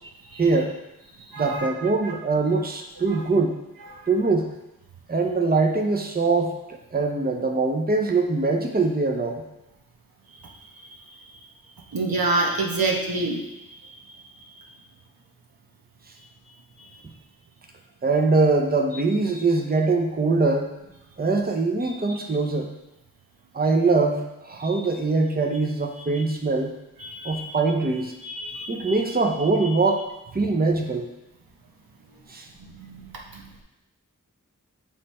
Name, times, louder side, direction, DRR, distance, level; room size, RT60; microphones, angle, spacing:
voice 1, 0.4-0.7 1.4-3.6 4.1-4.5 5.1-9.4 18.0-20.7 21.2-22.7 23.5-26.7 27.2-28.1 28.7-30.0 30.3-31.1 32.3-32.5, right 3 dB, 25° right, 3 dB, 0.7 m, -23 dB
voice 2, 1.3-1.7 3.9-4.0 11.9-13.4 27.0-27.4 28.2-29.0 32.6-33.1 33.3-33.4, right 2 dB, 85° right, -1 dB, 1.0 m, -27 dB
7.4 x 3.3 x 4.2 m, 0.93 s
wide cardioid pair, 45°, 34 cm